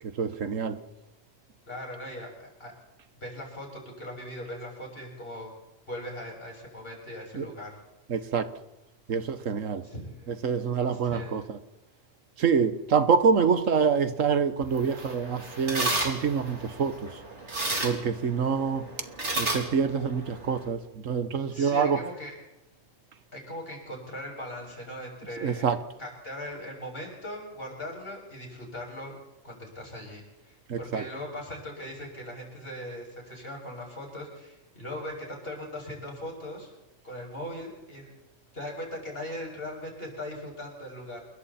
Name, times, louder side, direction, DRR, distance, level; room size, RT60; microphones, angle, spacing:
voice 1, 0.0-0.8 7.3-7.5 8.1-8.5 9.1-9.9 10.3-11.6 12.4-17.2 17.8-18.9 19.3-22.0 25.4-25.8 30.7-31.0, right 6 dB, 85° right, 1.6 m, -26 dB
voice 2, 1.7-2.7 3.1-5.5 5.9-7.8 9.8-10.4 10.9-11.4 21.5-22.3 23.3-25.7 26.0-29.2 29.4-36.7 37.0-38.1 38.5-41.2, left 1 dB, 50° left, 7.3 m, -39 dB
sound 1, 14.6-20.7, right 2 dB, 60° right, 3.6 m, -33 dB
28.5 x 22.0 x 4.3 m
omnidirectional pair, 1.3 m